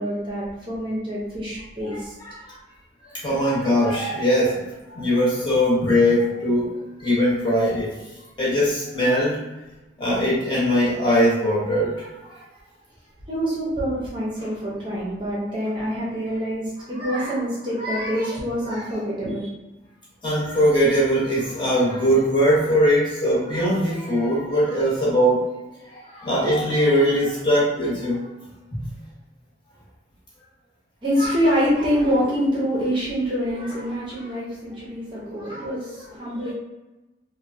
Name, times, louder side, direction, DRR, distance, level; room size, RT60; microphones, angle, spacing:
voice 1, 0.0-2.2 13.3-19.5 31.0-36.5, equal, 25° right, -6 dB, 0.6 m, -25 dB
voice 2, 2.2-2.6 3.1-4.6 4.9-6.7 7.0-8.0 8.4-9.4 10.0-12.4 20.2-25.4 25.8-28.3 28.7-28.8, equal, 25° left, -8 dB, 1.0 m, -21 dB
3.1 x 2.1 x 2.6 m, 1.0 s
head